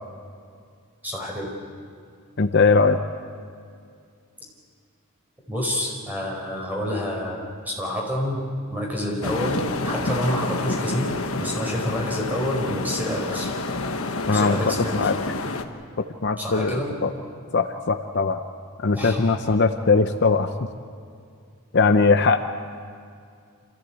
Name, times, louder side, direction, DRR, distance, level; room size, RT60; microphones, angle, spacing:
voice 1, 1.0-1.6 5.5-13.5 14.3-15.2 16.4-17.0 18.9-19.3, equal, 10° right, -1 dB, 4.7 m, -28 dB
voice 2, 2.4-3.0 14.3-15.2 16.0-17.1 17.5-18.4 18.8-20.5 21.7-22.4, left 4 dB, 50° left, 7 dB, 0.7 m, -20 dB
sound 1, 9.2-15.6, left 3 dB, 70° left, 1.3 m, -29 dB
27.5 x 15.5 x 8.4 m, 2.2 s
head